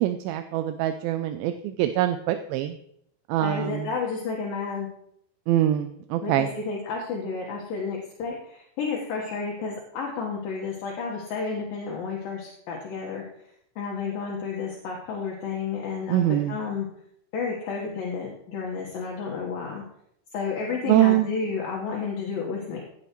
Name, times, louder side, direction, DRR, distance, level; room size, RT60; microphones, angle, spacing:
voice 1, 0.0-2.8 3.3-3.9 5.5-6.5 16.1-16.6 20.9-21.3, right 13 dB, 80° right, 8 dB, 2.3 m, -24 dB
voice 2, 3.4-4.9 6.2-13.2 13.8-16.2 16.5-16.9 17.3-19.8 20.3-22.8, left 5 dB, 70° left, -2 dB, 3.0 m, -31 dB
16.0 x 9.1 x 3.1 m, 0.72 s
omnidirectional pair, 4.4 m